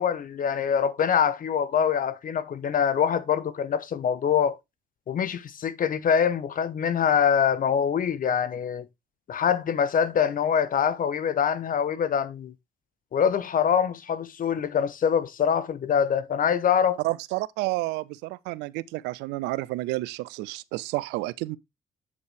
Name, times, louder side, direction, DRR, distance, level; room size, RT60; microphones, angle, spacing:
voice 1, 0.0-4.6 5.1-8.9 9.3-12.5 13.1-17.0, left 8 dB, 50° left, 0.9 m, -24 dB
voice 2, 17.0-21.6, right 20 dB, 75° right, 0.4 m, -30 dB
8.2 x 5.2 x 3.3 m
hypercardioid pair, 45°, 18 cm